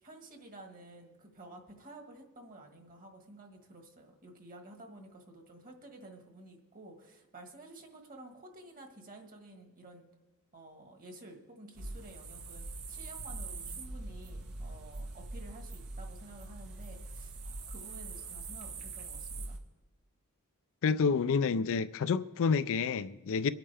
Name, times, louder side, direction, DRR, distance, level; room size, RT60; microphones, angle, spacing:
voice 1, 0.0-10.1 10.5-19.6, right 2 dB, 40° right, 1.6 m, -52 dB
sound 1, 11.7-19.6, right 3 dB, 90° right, 1.3 m, -43 dB
voice 2, 20.8-23.5, left 5 dB, 60° left, 0.4 m, -29 dB
24.0 x 8.8 x 3.4 m
head